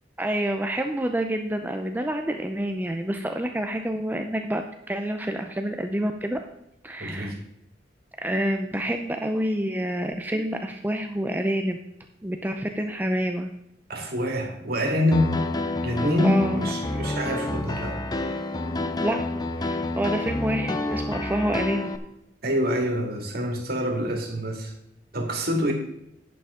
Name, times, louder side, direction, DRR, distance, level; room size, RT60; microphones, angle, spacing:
voice 1, 0.2-4.6 4.9-6.4 6.8-7.3 8.2-11.8 12.2-13.5 16.2-16.6 19.0-19.2 19.6-21.9, right 1 dB, 10° right, 5 dB, 0.6 m, -27 dB
voice 2, 7.0-7.4 13.9-15.3 15.8-18.0 22.4-24.7 25.1-25.7, equal, 55° right, 2 dB, 2.5 m, -26 dB
Piano, 15.1-22.0, left 2 dB, 20° left, 0.7 m, -29 dB
11.0 x 8.5 x 3.7 m, 0.79 s
head